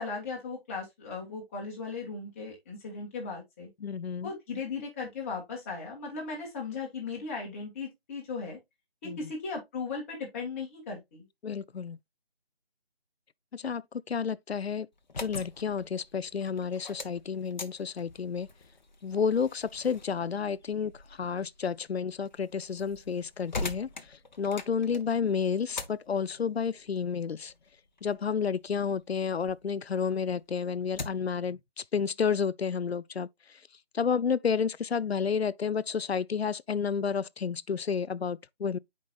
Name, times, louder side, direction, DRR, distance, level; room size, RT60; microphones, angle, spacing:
voice 1, 0.0-3.7 4.2-8.6 9.0-11.3, left 4 dB, 15° left, 1.8 m, -37 dB
voice 2, 3.8-4.3 9.0-9.2 11.4-12.0 13.5-14.9 15.2-18.5 19.0-27.5 28.0-33.6 33.9-38.8, left 6 dB, 85° left, 0.6 m, -31 dB
sound 1, 14.9-29.6 30.0-31.4, left 3 dB, 45° left, 1.0 m, -44 dB
9.1 x 5.2 x 2.4 m
figure-of-eight pair, 160°, 30 cm